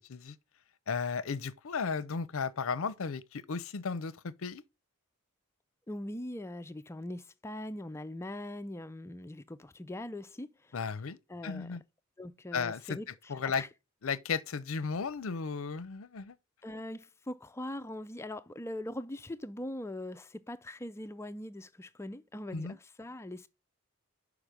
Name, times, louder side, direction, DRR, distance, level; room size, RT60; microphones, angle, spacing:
voice 1, 0.9-4.6 10.7-11.2 11.4-11.8 12.5-13.0 13.3-13.6 14.0-16.4 22.5-22.8, left 5 dB, 65° left, 0.6 m, -34 dB
voice 2, 5.9-10.8 11.3-11.8 12.2-13.7 16.6-23.5, left 1 dB, 10° left, 0.4 m, -41 dB
6.0 x 4.8 x 5.1 m
head